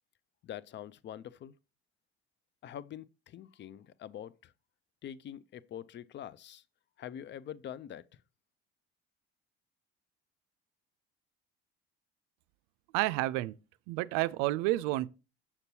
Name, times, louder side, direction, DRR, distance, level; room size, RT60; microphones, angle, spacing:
voice 1, 0.4-1.5 2.6-4.5 5.0-6.6 7.0-8.0, left 10 dB, 35° left, 0.4 m, -45 dB
voice 2, 12.9-13.5 13.9-15.1, right 18 dB, 65° right, 0.4 m, -30 dB
7.0 x 6.6 x 2.8 m
hypercardioid pair, 60°, 32 cm